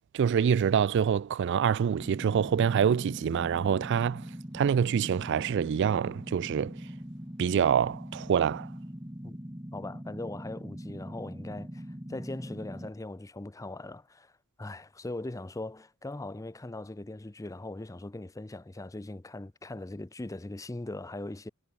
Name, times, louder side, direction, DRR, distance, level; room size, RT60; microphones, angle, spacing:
voice 1, 0.1-4.2 4.5-6.8 7.4-8.7, right 7 dB, 55° right, 0.3 m, -26 dB
sound 1, 2.0-12.9, equal, 15° right, 2.3 m, -42 dB
voice 2, 9.7-14.3 14.6-21.5, left 2 dB, 15° left, 0.5 m, -40 dB
head